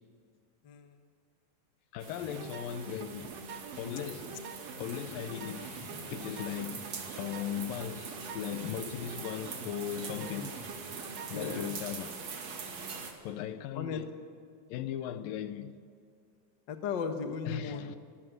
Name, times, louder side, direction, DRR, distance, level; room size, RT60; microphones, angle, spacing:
voice 1, 0.6-1.0 10.4-10.5 11.3-11.6 13.7-14.0 16.7-17.9, left 6 dB, 50° left, 1.4 m, -36 dB
voice 2, 1.9-3.4 3.8-4.4 4.8-10.6 11.3-12.2 13.2-14.1 14.7-15.7 17.5-18.0, left 10 dB, 80° left, 2.6 m, -38 dB
sound 1, 2.0-13.1, right 5 dB, 50° right, 3.1 m, -43 dB
sound 2, 2.2-11.8, right 5 dB, 80° right, 3.2 m, -46 dB
25.0 x 14.5 x 9.4 m
omnidirectional pair, 4.1 m